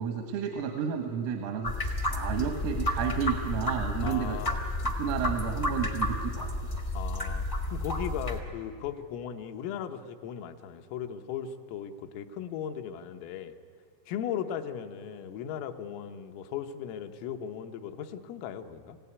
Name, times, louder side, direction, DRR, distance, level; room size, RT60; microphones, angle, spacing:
voice 1, 0.0-4.4 5.0-6.8, right 7 dB, 85° right, 5 dB, 4.0 m, -32 dB
sound 1, 1.6-8.4, left 1 dB, 65° left, 0.5 m, -31 dB
voice 2, 4.0-4.6 7.0-13.5 14.1-19.0, left 8 dB, 85° left, 6 dB, 3.7 m, -37 dB
29.0 x 16.0 x 9.7 m, 2.2 s
omnidirectional pair, 5.8 m